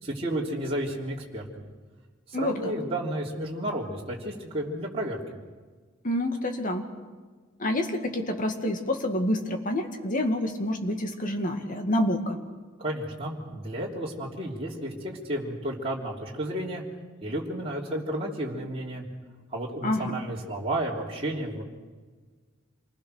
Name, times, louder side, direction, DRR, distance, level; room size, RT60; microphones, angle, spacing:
voice 1, 0.0-1.7 2.3-5.4 12.8-16.8 17.2-19.1 19.5-21.6, right 1 dB, 30° right, -4 dB, 3.2 m, -32 dB
voice 2, 2.3-2.7 6.0-6.9 7.6-12.4 19.8-20.2, left 1 dB, 40° left, 4 dB, 2.1 m, -28 dB
27.5 x 20.0 x 6.5 m, 1.4 s
head